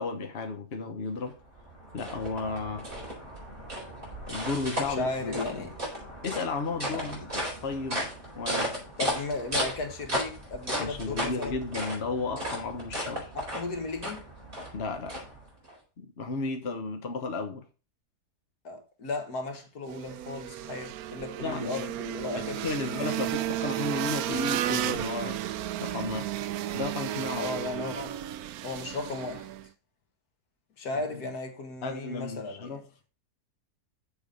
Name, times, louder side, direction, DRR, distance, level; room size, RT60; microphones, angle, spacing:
voice 1, 0.0-1.3 1.9-2.9 4.3-5.4 6.2-8.1 8.3-8.8 10.8-13.3 14.7-15.2 16.0-17.6 21.4-21.8 22.3-25.4 25.8-26.3 26.7-27.5 30.9-31.3 31.8-32.8, left 3 dB, 45° left, 1.2 m, -34 dB
sound 1, 1.3-15.8, equal, 30° right, 4.5 m, -35 dB
voice 2, 4.9-5.8 6.9-7.3 9.0-11.6 13.3-14.2 18.6-23.2 27.4-28.2 28.6-29.5 30.8-32.8, left 3 dB, 70° left, 2.0 m, -35 dB
sound 2, 19.8-29.7, right 12 dB, 75° right, 1.0 m, -33 dB
7.0 x 7.0 x 5.1 m
omnidirectional pair, 1.7 m